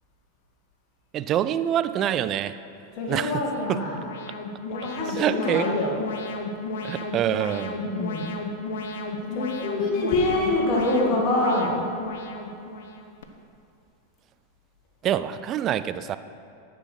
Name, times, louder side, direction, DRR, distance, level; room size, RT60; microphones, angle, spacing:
voice 1, 1.1-2.6 3.1-3.4 3.7-3.8 5.2-5.7 6.8-7.8 15.0-16.2, right 10 dB, 30° right, 13 dB, 0.4 m, -25 dB
voice 2, 2.9-4.0 4.7-6.0 7.7-8.5 9.1-11.9, left 2 dB, 40° left, -2 dB, 2.0 m, -25 dB
Alarm, 3.4-13.2, left 2 dB, 55° left, 0.9 m, -34 dB
11.0 x 6.1 x 6.1 m, 2.5 s
figure-of-eight pair, 90°, 0 cm